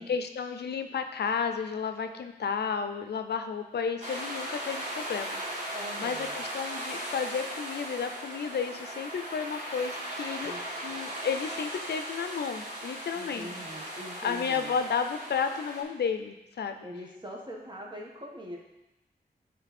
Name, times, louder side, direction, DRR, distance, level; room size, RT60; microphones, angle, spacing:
voice 1, 0.0-5.4 6.0-10.5 10.8-13.5 14.2-16.9, left 6 dB, 85° left, 8 dB, 0.5 m, -32 dB
sound 1, 4.0-15.8, right 1 dB, 50° right, 2.1 m, -38 dB
voice 2, 5.7-6.4 10.4-10.6 10.9-11.0 13.1-14.7 16.8-18.6, equal, 25° right, -2 dB, 1.5 m, -42 dB
8.8 x 3.2 x 4.2 m, 0.96 s
cardioid pair, 50°, 17 cm